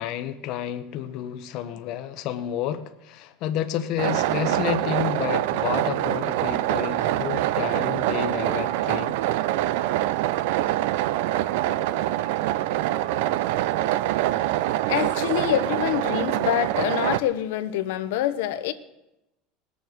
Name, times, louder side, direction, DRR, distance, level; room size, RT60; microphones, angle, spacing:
voice 1, 0.0-9.2, left 11 dB, 45° left, 0.8 m, -30 dB
sound 1, 4.0-17.2, right 14 dB, 70° right, 0.5 m, -25 dB
voice 2, 14.9-18.7, left 12 dB, 80° left, 0.9 m, -26 dB
20.0 x 7.2 x 6.4 m
cardioid pair, 170°, 0 cm